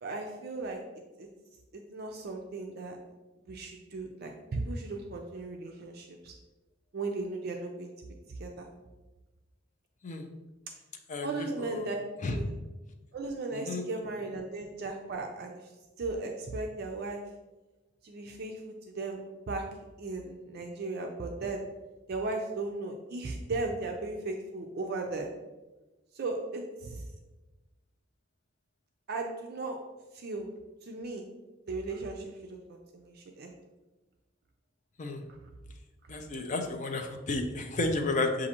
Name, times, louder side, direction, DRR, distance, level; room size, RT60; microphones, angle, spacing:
voice 1, 0.0-0.8 1.2-1.3 1.7-3.0 3.5-6.3 6.9-7.9 8.4-8.7 11.2-12.0 12.3-12.5 13.1-15.7 16.0-17.2 18.0-19.2 19.5-19.6 20.0-21.6 22.1-25.3 26.1-27.0 29.1-29.8 30.1-30.5 30.8-31.2 31.7-33.6 35.3-35.4, right 3 dB, 55° right, 2 dB, 0.4 m, -36 dB
voice 2, 11.1-11.9 12.2-12.4 13.5-13.8 35.0-35.2 36.1-38.5, left 2 dB, 40° left, 4 dB, 0.5 m, -32 dB
7.2 x 2.5 x 2.8 m, 1.1 s
head